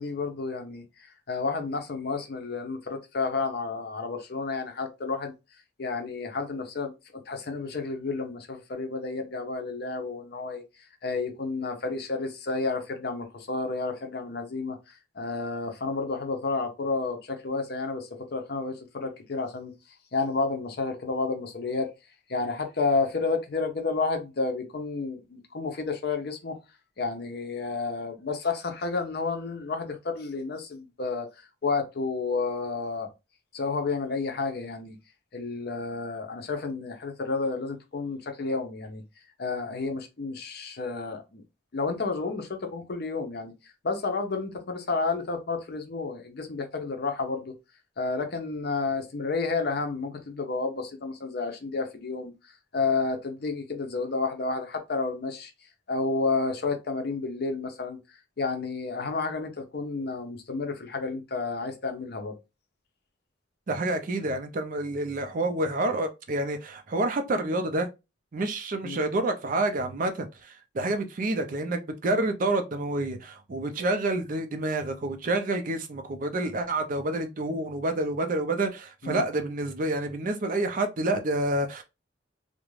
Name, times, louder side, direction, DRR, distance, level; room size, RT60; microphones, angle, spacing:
voice 1, 0.0-5.3 5.8-6.9 7.3-10.6 11.0-19.7 20.1-21.9 22.3-26.6 27.0-33.1 33.5-35.0 35.3-39.0 39.4-41.4 41.7-47.5 48.0-52.3 52.7-55.5 55.9-62.4 68.8-69.0 79.0-79.2, left 3 dB, 55° left, 0.6 m, -31 dB
voice 2, 63.7-67.9 68.3-81.8, right 2 dB, 45° right, 0.4 m, -28 dB
2.4 x 2.1 x 3.1 m
head